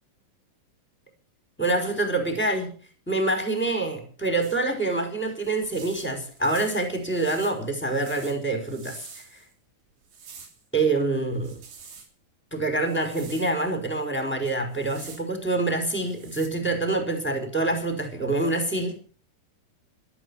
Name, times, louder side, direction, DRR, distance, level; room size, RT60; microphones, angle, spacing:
voice 1, 1.6-2.7 3.1-9.0 10.7-11.6 12.5-19.0, right 2 dB, 5° left, 4.8 m, -26 dB
sound 1, 4.4-4.6 5.4-9.5 10.0-10.6 11.3-12.1 12.9-13.5 14.6-15.2 16.0-16.5, right 5 dB, 85° right, 5.0 m, -47 dB
13.5 x 12.5 x 7.2 m
omnidirectional pair, 4.1 m